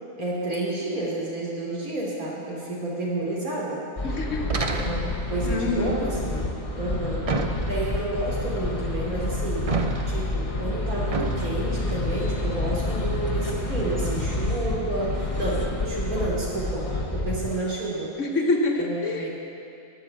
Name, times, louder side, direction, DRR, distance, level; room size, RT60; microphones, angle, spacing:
voice 1, 0.2-3.8 4.7-7.3 7.7-9.6 10.1-18.1 18.7-19.3, right 2 dB, 75° right, -5 dB, 3.3 m, -30 dB
voice 2, 4.0-4.6 5.4-6.1 18.2-19.3, left 2 dB, 60° left, 1 dB, 1.5 m, -26 dB
sound 1, 4.0-17.6, left 2 dB, 30° left, 0.9 m, -29 dB
sound 2, 4.5-5.3 7.3-8.0 9.7-10.3 11.1-11.5, right 3 dB, 40° right, 0.5 m, -28 dB
11.0 x 10.0 x 7.5 m, 2.7 s
omnidirectional pair, 1.5 m